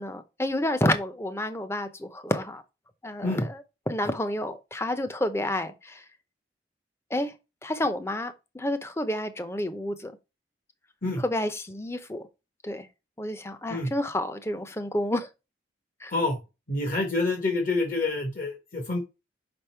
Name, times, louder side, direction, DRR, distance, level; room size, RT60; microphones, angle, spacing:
voice 1, 0.0-2.6 3.0-6.0 7.1-7.3 7.6-10.1 11.2-12.3 12.6-12.9 13.2-15.3 16.0-16.1, left 1 dB, 15° left, 0.7 m, -29 dB
voice 2, 16.7-19.0, left 2 dB, 50° left, 1.4 m, -27 dB
5.3 x 5.1 x 4.5 m
head